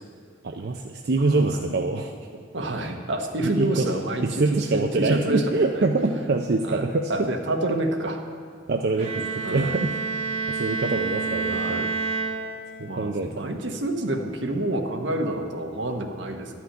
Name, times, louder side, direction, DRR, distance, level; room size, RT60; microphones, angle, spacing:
voice 1, 0.4-2.1 3.4-3.9 4.2-7.3 8.7-9.9 10.5-11.9 12.8-13.5, right 3 dB, 55° right, 4 dB, 0.5 m, -25 dB
voice 2, 1.3-1.6 2.5-4.4 4.7-5.8 6.7-8.2 9.4-9.8 11.5-11.9 12.9-16.6, right 1 dB, 80° right, 4 dB, 1.2 m, -28 dB
Bowed string instrument, 9.0-13.0, right 4 dB, 35° right, 1.4 m, -29 dB
11.5 x 6.0 x 9.0 m, 2.2 s
head